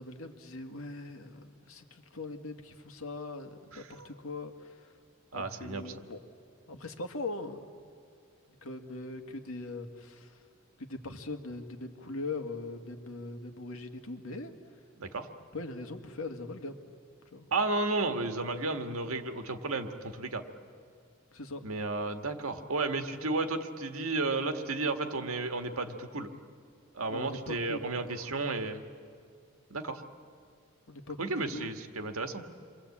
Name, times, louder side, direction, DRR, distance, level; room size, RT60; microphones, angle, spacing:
voice 1, 0.0-4.9 5.3-6.2 6.7-7.7 8.6-10.4 10.8-14.5 15.5-16.8 17.3-17.5 21.3-21.6 27.0-28.5 30.9-31.7, left 2 dB, 80° left, 5 dB, 2.0 m, -41 dB
voice 2, 3.7-4.1 5.3-5.9 15.0-15.3 17.5-20.4 21.6-26.3 26.9-28.8 29.7-30.0 31.2-32.4, right 3 dB, 90° right, 6 dB, 1.7 m, -33 dB
28.5 x 23.5 x 8.6 m, 2.2 s
head